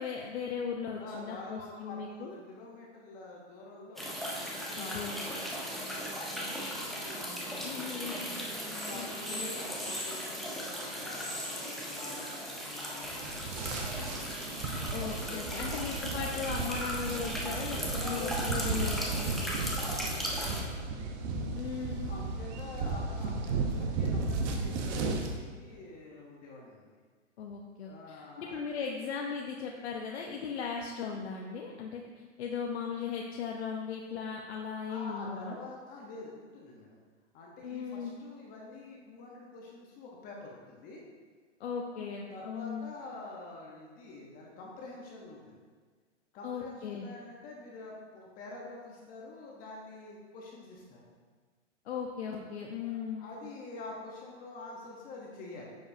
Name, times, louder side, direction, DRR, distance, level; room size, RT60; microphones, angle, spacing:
voice 1, 0.0-2.3 4.7-5.2 7.6-8.4 8.9-9.5 14.9-19.0 21.5-22.1 27.4-35.6 37.6-38.1 41.6-42.9 46.4-47.1 51.9-53.3, left 6 dB, 60° left, 0 dB, 0.9 m, -38 dB
voice 2, 1.0-4.2 4.7-8.2 8.7-13.7 14.0-14.3 15.2-15.8 17.8-20.8 22.1-26.9 27.8-28.6 34.9-37.0 37.3-41.0 41.9-45.6 46.3-51.0 52.8-55.8, left 2 dB, 25° left, -2 dB, 1.0 m, -47 dB
sound 1, 4.0-20.6, equal, ahead, 0.5 m, -37 dB
sound 2, 13.0-25.3, right 3 dB, 35° right, 1.0 m, -35 dB
9.4 x 7.0 x 2.7 m, 1.5 s
hypercardioid pair, 145°, 36 cm